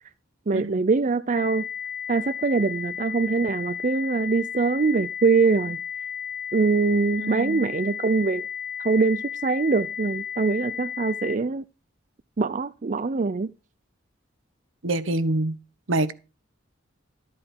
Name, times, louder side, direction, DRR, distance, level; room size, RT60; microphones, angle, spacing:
voice 1, 0.5-1.7 2.1-5.8 6.5-8.5 8.8-11.6 12.4-13.5, right 4 dB, 40° right, 0.5 m, -23 dB
sound 1, 1.4-11.4, left 8 dB, 60° left, 0.9 m, -34 dB
voice 2, 7.2-7.7 14.8-15.6 15.9-16.2, right 2 dB, 75° right, 1.2 m, -26 dB
13.0 x 8.8 x 4.5 m
head